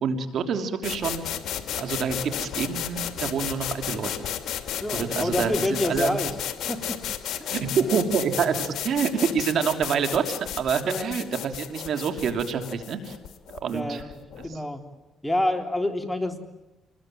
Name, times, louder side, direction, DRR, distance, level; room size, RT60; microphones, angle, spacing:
voice 1, 0.0-1.2 1.8-4.3 5.0-6.2 7.5-10.2 10.6-13.2 13.5-14.0, right 6 dB, 65° right, 6 dB, 3.0 m, -27 dB
sound 1, 0.8-14.5, left 10 dB, 75° left, 2.6 m, -33 dB
voice 2, 4.8-6.3 6.7-7.0 7.3-8.0 10.8-11.2 13.7-14.8 15.2-16.4, left 1 dB, 5° left, 5 dB, 3.4 m, -28 dB
28.5 x 21.0 x 9.1 m, 1.0 s
cardioid pair, 90°, 0 cm